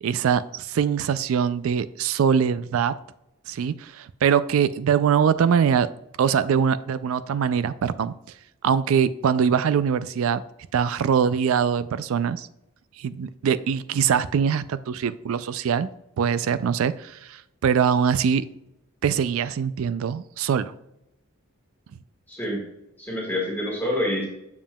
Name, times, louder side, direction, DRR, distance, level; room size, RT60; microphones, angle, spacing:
voice 1, 0.0-3.0 3.5-5.9 6.2-8.1 8.6-10.4 10.7-12.5 13.0-15.9 16.2-18.5 19.0-20.7, right 7 dB, 65° right, 15 dB, 0.3 m, -23 dB
voice 2, 22.3-22.6 23.0-24.2, left 1 dB, 10° left, -4 dB, 1.6 m, -27 dB
7.2 x 7.1 x 2.2 m, 0.86 s
head